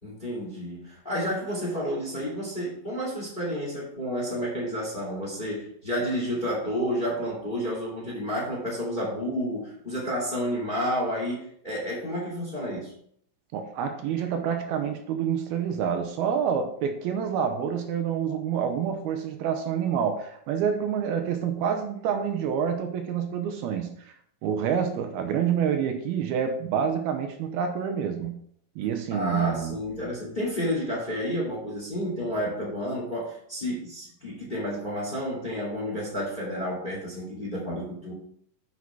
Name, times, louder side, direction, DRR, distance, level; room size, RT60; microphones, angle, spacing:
voice 1, 0.0-13.0 29.1-38.1, equal, 15° left, -3 dB, 2.2 m, -30 dB
voice 2, 13.5-24.1 24.4-28.4 28.8-29.8, right 7 dB, 75° right, 6 dB, 2.6 m, -27 dB
8.4 x 5.9 x 4.6 m, 0.65 s
omnidirectional pair, 4.6 m